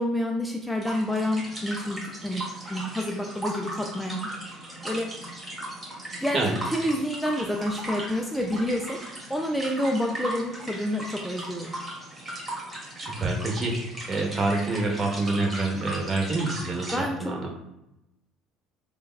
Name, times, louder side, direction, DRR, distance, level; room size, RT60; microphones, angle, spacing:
voice 1, 0.0-2.4 2.7-4.3 4.8-5.1 6.2-6.4 6.7-11.7 16.9-17.3, left 1 dB, ahead, 1 dB, 0.4 m, -28 dB
sound 1, 0.7-17.0, right 1 dB, 20° right, 1.4 m, -37 dB
voice 2, 13.0-13.7 14.1-17.5, right 2 dB, 35° right, 1 dB, 0.8 m, -27 dB
3.3 x 2.1 x 2.3 m, 0.89 s
hypercardioid pair, 70°, 0 cm